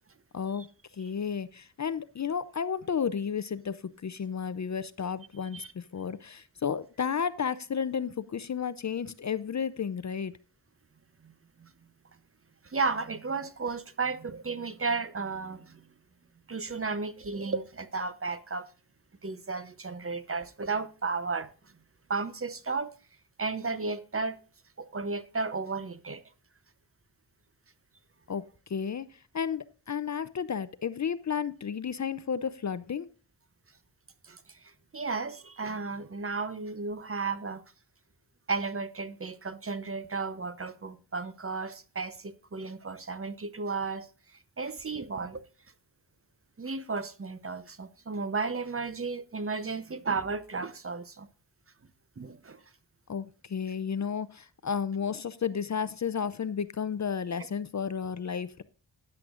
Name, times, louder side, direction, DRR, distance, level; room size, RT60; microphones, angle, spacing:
voice 1, 0.3-0.7 0.9-10.4 28.3-28.4 28.7-33.1 53.1-58.6, left 7 dB, 40° left, 0.5 m, -32 dB
voice 2, 12.6-15.9 16.5-18.7 19.2-21.5 22.1-22.9 23.4-24.4 24.8-26.2 34.2-37.6 38.5-45.4 46.6-51.3 52.2-52.6, right 4 dB, 30° right, 0.7 m, -34 dB
13.0 x 9.8 x 2.5 m
wide cardioid pair, 80°, 45 cm